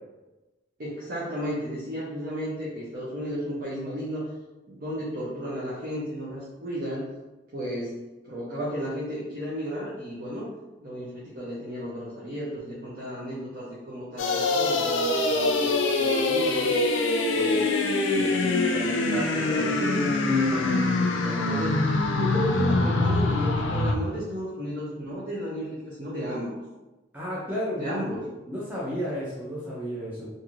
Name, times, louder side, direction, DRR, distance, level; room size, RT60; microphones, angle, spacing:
voice 1, 0.8-4.3 4.7-7.0 7.5-10.5 10.8-16.7 17.3-17.7 18.1-21.8 22.1-26.6 27.7-28.3 28.9-29.0, equal, 50° right, -8 dB, 0.6 m, -33 dB
sound 1, 14.2-23.9, left 2 dB, 85° left, 0.4 m, -24 dB
voice 2, 27.1-28.0 28.5-30.3, equal, 10° right, -8 dB, 0.5 m, -32 dB
3.0 x 2.6 x 2.5 m, 1.1 s
head